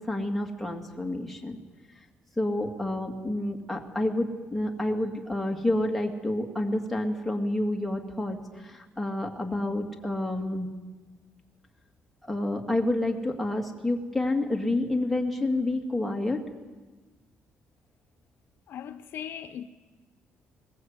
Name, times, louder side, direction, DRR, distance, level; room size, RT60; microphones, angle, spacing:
voice 1, 0.0-1.6 2.4-10.7 12.3-16.4, left 1 dB, 5° left, 2.3 m, -29 dB
voice 2, 18.7-19.7, left 9 dB, 60° left, 0.8 m, -38 dB
21.5 x 20.5 x 8.2 m
cardioid pair, 180°, 4 cm